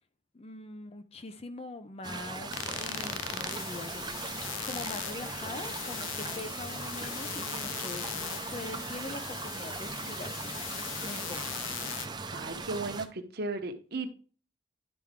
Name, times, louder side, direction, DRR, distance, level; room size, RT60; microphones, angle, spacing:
voice 1, 0.3-4.4 4.6-11.5, left 2 dB, 30° left, 0.5 m, -43 dB
sound 1, 2.0-13.1, right 4 dB, 20° right, 0.6 m, -39 dB
sound 2, 2.5-12.1, left 11 dB, 80° left, 0.5 m, -39 dB
voice 2, 12.3-14.1, right 3 dB, 50° right, 1.0 m, -35 dB
11.0 x 4.5 x 3.6 m
head